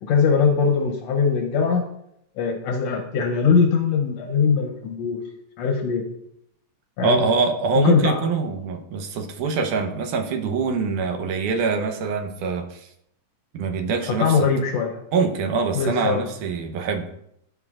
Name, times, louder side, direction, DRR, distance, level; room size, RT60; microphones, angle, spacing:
voice 1, 0.0-1.9 2.4-5.2 5.6-6.1 7.0-7.3 7.7-8.2 14.1-15.0 15.7-16.2, left 5 dB, 70° left, 3 dB, 1.7 m, -21 dB
voice 2, 7.0-12.9 13.5-14.4 15.1-17.0, right 4 dB, 80° right, 5 dB, 2.3 m, -24 dB
16.5 x 5.5 x 2.4 m, 0.75 s
omnidirectional pair, 3.7 m